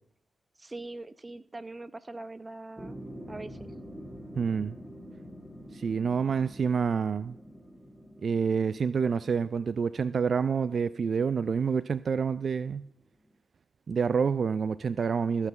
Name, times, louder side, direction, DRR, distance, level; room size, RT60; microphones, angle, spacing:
voice 1, 0.6-3.0 3.3-3.7, right 2 dB, 30° right, 0.8 m, -42 dB
sound 1, 2.8-11.7 12.2-12.3, equal, 10° right, 2.6 m, -47 dB
voice 2, 4.4-4.7 5.7-7.3 8.2-12.9 13.9-15.5, right 6 dB, 60° right, 0.3 m, -28 dB
14.5 x 5.7 x 7.9 m
supercardioid pair, 45°, 0 cm